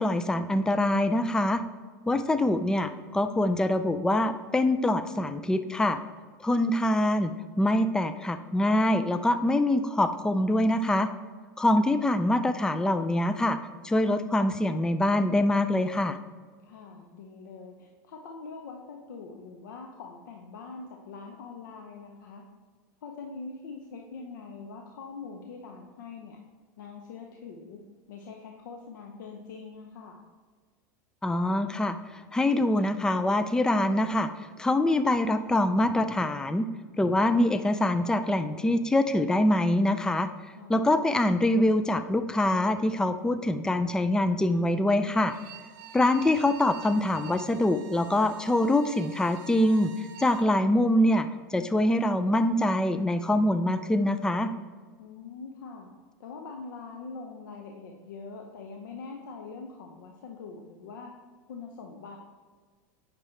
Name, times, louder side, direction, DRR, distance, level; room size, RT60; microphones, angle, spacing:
voice 1, 0.0-1.6 2.1-6.0 6.4-11.1 11.6-13.6 13.8-16.2 31.2-34.3 34.6-36.7 37.0-40.3 40.7-45.3 45.9-49.9 50.2-54.5, left 1 dB, 5° left, 10 dB, 0.4 m, -24 dB
voice 2, 16.6-22.4 23.0-26.4 26.8-27.8 28.1-30.2 40.6-40.8 55.0-55.9 56.2-61.1 61.5-62.2, left 4 dB, 80° left, 2 dB, 0.8 m, -43 dB
Bowed string instrument, 45.2-50.5, right 8 dB, 70° right, 0.8 m, -46 dB
8.7 x 6.0 x 3.2 m, 1.5 s
hypercardioid pair, 110°, 10 cm